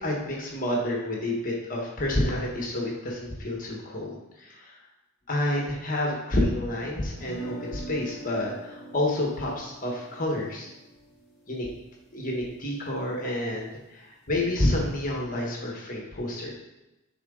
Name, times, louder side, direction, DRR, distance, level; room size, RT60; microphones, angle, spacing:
voice 1, 0.0-4.7 5.3-10.7 11.5-11.7 12.1-16.5, left 1 dB, 40° left, -2 dB, 1.3 m, -29 dB
sound 1, 7.2-13.2, right 3 dB, ahead, 2.1 m, -44 dB
10.5 x 4.0 x 3.8 m, 0.98 s
head